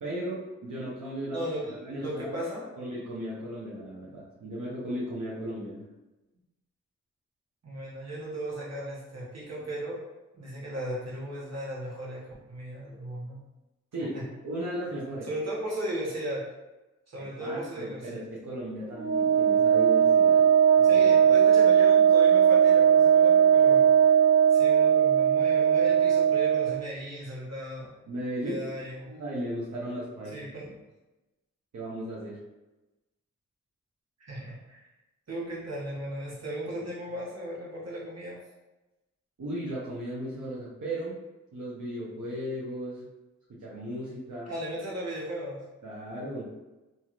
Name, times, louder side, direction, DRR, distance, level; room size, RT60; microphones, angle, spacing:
voice 1, 0.0-1.4 1.8-2.5 2.8-5.8 13.9-14.2 14.4-15.3 17.2-20.5 20.8-21.1 28.1-28.6 29.1-30.4 31.7-32.4 39.4-41.2 41.5-43.1 43.5-44.5 45.8-46.5, right 1 dB, 85° right, -8 dB, 0.8 m, -36 dB
voice 2, 1.3-2.7 7.6-10.0 10.3-12.2 12.5-13.4 14.1-14.2 15.2-16.5 17.1-18.2 20.8-24.1 24.5-27.9 28.4-29.1 30.3-30.7 34.2-34.8 35.3-38.4 44.5-45.6, right 1 dB, 60° right, -5 dB, 1.2 m, -36 dB
Wind instrument woodwind instrument, 19.0-26.8, right 8 dB, 40° right, 0.6 m, -19 dB
2.9 x 2.8 x 2.4 m, 1.1 s
cardioid pair, 50°, 30 cm